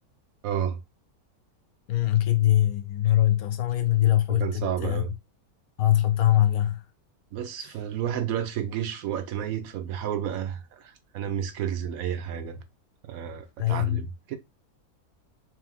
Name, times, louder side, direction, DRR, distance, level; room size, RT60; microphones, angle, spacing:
voice 1, 0.4-0.8 4.3-5.1 7.3-12.6 13.1-14.4, right 9 dB, 75° right, 1.0 m, -31 dB
voice 2, 1.9-5.0 5.8-6.8 13.6-14.0, left 13 dB, 75° left, 1.0 m, -22 dB
3.4 x 3.1 x 3.3 m
omnidirectional pair, 1.6 m